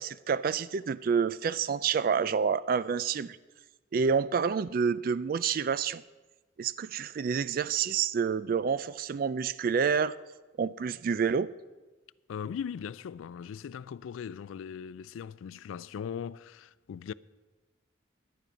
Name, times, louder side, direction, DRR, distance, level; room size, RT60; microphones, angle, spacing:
voice 1, 0.0-3.4 3.9-6.0 6.6-10.1 10.6-11.5, right 6 dB, 45° right, 0.3 m, -28 dB
voice 2, 12.3-17.1, left 7 dB, 85° left, 0.3 m, -39 dB
11.0 x 10.0 x 5.2 m
head